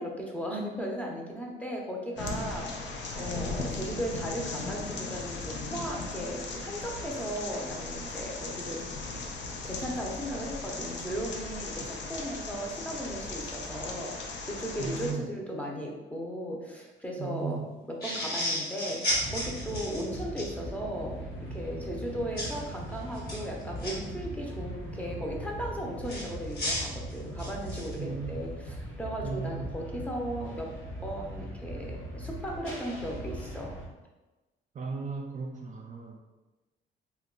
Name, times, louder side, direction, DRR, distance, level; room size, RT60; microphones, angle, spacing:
voice 1, 0.0-9.2 9.6-19.0 19.3-21.2 21.5-30.7 31.0-33.7, equal, 5° left, -1 dB, 0.7 m, -36 dB
sound 1, 2.2-15.1, left 3 dB, 65° left, 0.5 m, -37 dB
voice 2, 14.8-15.3 17.2-17.7 28.0-28.4 29.2-29.7 34.8-36.2, right 5 dB, 40° right, 0 dB, 0.4 m, -36 dB
sound 2, 18.0-20.5 22.4-22.6 23.1-23.9 26.1-27.9, left 1 dB, 50° left, 1.3 m, -33 dB
sound 3, 19.1-33.9, right 1 dB, 80° left, 1.2 m, -40 dB
2.9 x 2.3 x 3.8 m, 1.1 s
cardioid pair, 90°, 20 cm